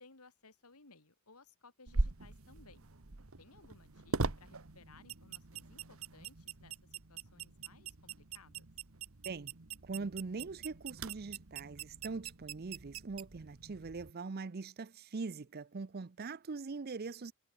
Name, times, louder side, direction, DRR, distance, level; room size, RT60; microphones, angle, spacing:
voice 1, 0.0-2.9 3.4-8.7, left 3 dB, 90° left, 3.0 m, -61 dB
sound 1, 1.9-14.1, right 3 dB, 70° right, 1.5 m, -42 dB
voice 2, 9.8-17.3, right 4 dB, 45° right, 0.6 m, -42 dB
head